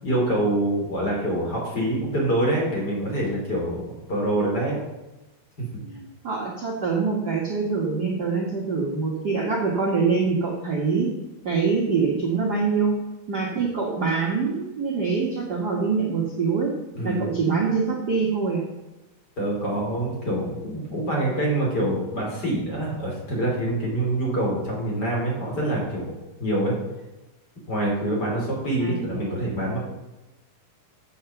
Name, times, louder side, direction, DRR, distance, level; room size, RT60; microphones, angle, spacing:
voice 1, 0.0-3.8 4.1-4.8 5.6-5.8 16.9-17.3 19.4-26.1 26.4-26.7 27.7-29.8, right 1 dB, 30° left, -3 dB, 3.1 m, -25 dB
voice 2, 5.8-11.1 11.4-13.0 13.3-16.7 17.0-18.6 28.8-29.4, right 5 dB, 70° right, -3 dB, 0.9 m, -24 dB
7.3 x 7.2 x 7.0 m, 1.0 s
omnidirectional pair, 4.1 m